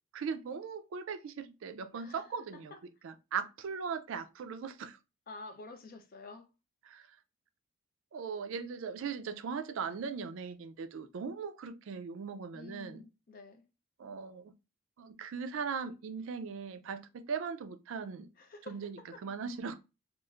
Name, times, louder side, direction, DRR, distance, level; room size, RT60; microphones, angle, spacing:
voice 1, 0.1-2.7 3.0-5.0 6.9-7.1 8.1-13.0 14.0-14.5 15.0-18.3 18.7-19.8, right 6 dB, 65° right, 0.3 m, -39 dB
voice 2, 1.9-2.8 5.3-6.5 12.5-13.7 18.4-19.2, left 3 dB, 40° left, 0.4 m, -50 dB
3.0 x 2.4 x 2.3 m
head